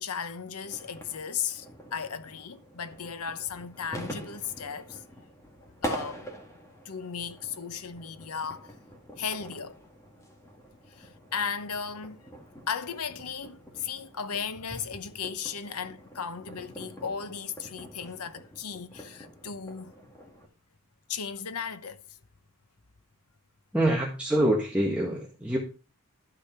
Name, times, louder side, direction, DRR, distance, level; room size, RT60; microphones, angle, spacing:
voice 1, 0.0-1.7 1.9-5.0 5.8-6.3 6.8-8.7 9.2-9.8 10.9-12.2 12.7-19.9 21.1-22.0, left 6 dB, 85° left, 1.0 m, -36 dB
sound 1, 0.6-20.5, equal, 15° left, 1.8 m, -44 dB
voice 2, 23.7-25.6, right 1 dB, 5° right, 1.6 m, -25 dB
12.0 x 5.1 x 6.0 m
head